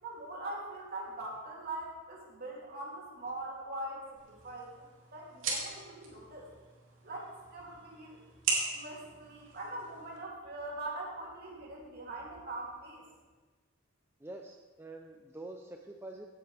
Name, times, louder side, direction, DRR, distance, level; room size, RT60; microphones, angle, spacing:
voice 1, 0.0-4.9 5.1-6.5 7.0-8.2 8.7-13.1, right 2 dB, 50° right, -3 dB, 2.9 m, -42 dB
sound 1, 4.2-10.2, right 4 dB, 80° right, 3.1 m, -39 dB
voice 2, 14.2-16.3, right 2 dB, 10° right, 2 dB, 0.5 m, -46 dB
16.5 x 9.3 x 3.4 m, 1.3 s
head